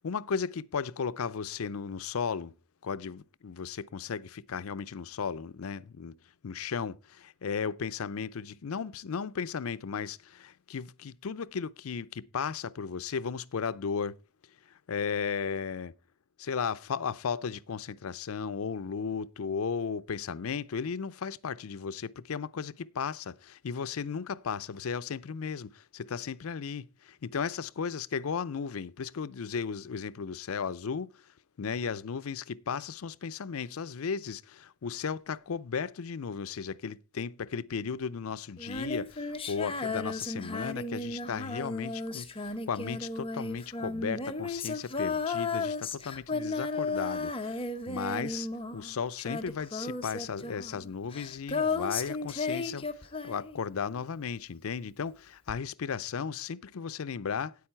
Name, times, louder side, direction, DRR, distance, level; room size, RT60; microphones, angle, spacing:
voice 1, 0.0-2.5 2.8-6.1 6.4-14.2 14.7-15.9 16.5-31.3 31.6-57.5, left 6 dB, 75° left, 0.5 m, -35 dB
Female singing, 38.6-53.9 55.5-55.6, left 3 dB, 25° left, 1.0 m, -34 dB
9.6 x 8.5 x 4.4 m
head